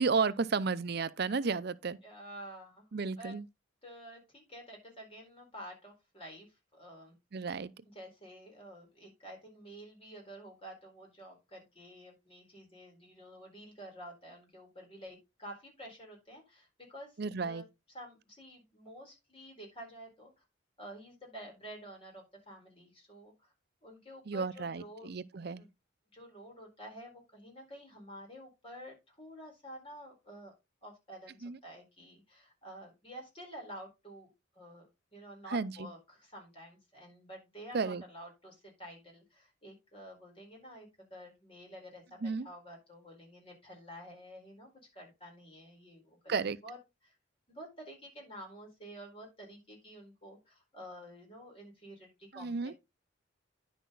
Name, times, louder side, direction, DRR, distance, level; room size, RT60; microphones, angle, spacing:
voice 1, 0.0-2.0 2.9-3.4 7.3-7.7 17.2-17.6 24.3-25.6 31.4-31.6 35.5-35.9 37.7-38.0 42.2-42.5 46.3-46.6 52.3-52.7, right 4 dB, 55° right, 0.5 m, -33 dB
voice 2, 2.0-2.8 3.2-3.3 3.8-7.1 7.9-17.7 17.9-20.4 20.8-23.5 23.8-25.1 25.5-25.7 26.1-30.5 30.8-34.3 34.5-46.3 46.6-46.8 47.0-47.1 47.5-52.8, equal, 30° left, 4.4 m, -50 dB
10.0 x 6.2 x 3.9 m
head